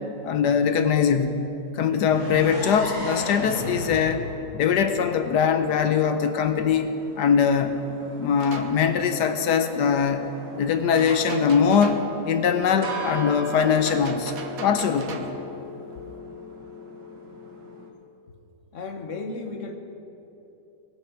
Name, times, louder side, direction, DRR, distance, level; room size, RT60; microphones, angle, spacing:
voice 1, 0.2-1.4 1.7-4.3 4.5-7.8 8.2-10.3 10.6-15.4, left 7 dB, 75° left, 8 dB, 1.2 m, -22 dB
sound 1, 2.1-5.9, equal, 15° left, 3.1 m, -34 dB
sound 2, 4.6-17.9, equal, 75° right, 1.9 m, -39 dB
sound 3, 8.3-8.8 11.0-12.1 13.9-15.4, right 5 dB, 60° right, 1.2 m, -39 dB
voice 2, 18.7-19.8, left 3 dB, 50° left, 4 dB, 1.3 m, -34 dB
20.0 x 6.7 x 5.8 m, 2.9 s
omnidirectional pair, 1.9 m